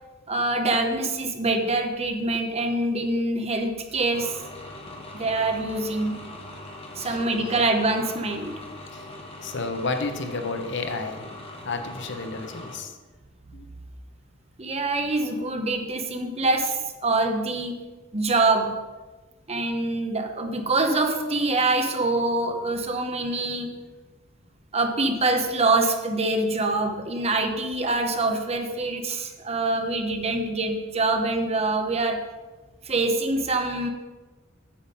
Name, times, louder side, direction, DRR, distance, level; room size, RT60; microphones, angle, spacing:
voice 1, 0.3-4.4 5.1-6.2 7.0-8.6 14.6-17.8 18.1-18.7 19.5-23.8 24.7-32.2 32.8-33.9, right 2 dB, 30° right, 5 dB, 1.0 m, -25 dB
sound 1, 4.1-12.8, left 1 dB, 30° left, 1.5 m, -41 dB
voice 2, 9.4-11.3 11.6-12.9 13.5-13.7, left 3 dB, 65° left, 6 dB, 1.0 m, -31 dB
8.8 x 7.4 x 5.3 m, 1.2 s
head